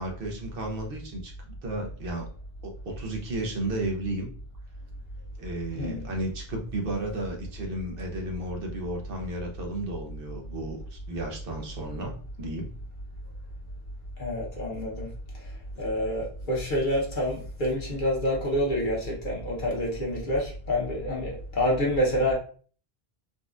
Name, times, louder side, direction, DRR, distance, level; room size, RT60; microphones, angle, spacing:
voice 1, 0.0-1.3 1.6-2.3 2.6-4.3 5.4-12.8, right 1 dB, 65° right, 2 dB, 0.9 m, -33 dB
voice 2, 5.7-6.1 14.2-15.1 15.8-22.3, equal, 55° left, -3 dB, 1.1 m, -27 dB
3.9 x 2.4 x 2.4 m, 0.41 s
omnidirectional pair, 1.0 m